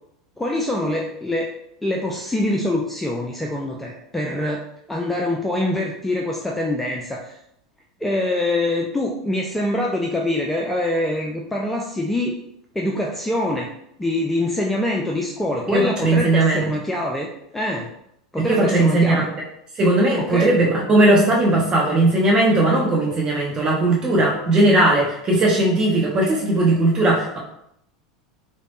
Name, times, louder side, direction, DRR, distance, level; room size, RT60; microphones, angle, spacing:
voice 1, 0.4-1.5 1.8-7.4 8.0-12.4 12.8-13.7 14.0-17.3 17.5-17.9 18.3-19.3 20.2-20.5, left 1 dB, 5° left, -1 dB, 0.3 m, -24 dB
voice 2, 15.7-16.7 18.4-19.3 19.8-27.4, right 2 dB, 30° right, -2 dB, 0.9 m, -18 dB
3.3 x 2.0 x 2.4 m, 0.76 s
figure-of-eight pair, 80°, 3 cm